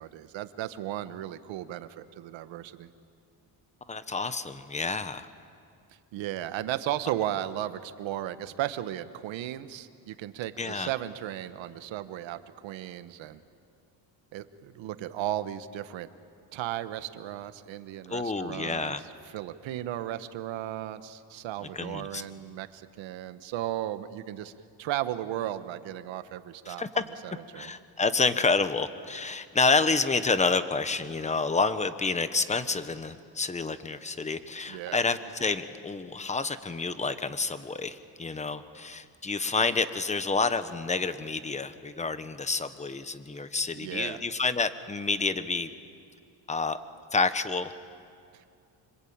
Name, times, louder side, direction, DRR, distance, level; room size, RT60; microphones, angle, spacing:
voice 1, 0.0-2.9 6.1-13.4 14.3-16.1 16.5-18.9 19.3-24.5 24.8-26.8 27.2-27.7 34.7-35.0 43.8-44.2 48.3-48.4, right 13 dB, 85° right, 11 dB, 1.3 m, -35 dB
voice 2, 3.9-5.3 10.6-10.9 18.1-19.0 21.7-22.2 26.7-27.0 27.5-45.7 46.5-46.8 47.1-47.7, left 4 dB, 15° left, 11 dB, 1.1 m, -29 dB
26.5 x 25.5 x 8.8 m, 2.4 s
cardioid pair, 135°, 44 cm